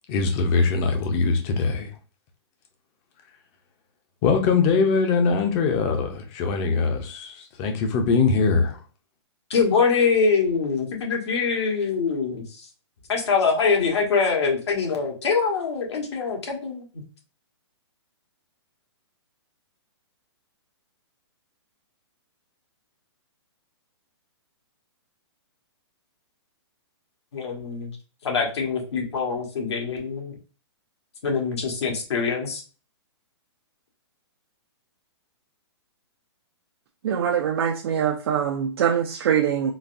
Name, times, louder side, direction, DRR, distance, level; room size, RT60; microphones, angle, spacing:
voice 1, 0.1-1.9 4.2-8.8, left 4 dB, 25° left, 0.6 m, -22 dB
voice 2, 9.5-12.7 13.1-16.8 27.3-28.0 28.2-30.3 31.2-32.6, left 5 dB, 75° left, 1.3 m, -24 dB
voice 3, 37.0-39.7, right 8 dB, 60° right, 0.5 m, -23 dB
3.9 x 2.2 x 2.5 m
hypercardioid pair, 150°, 14 cm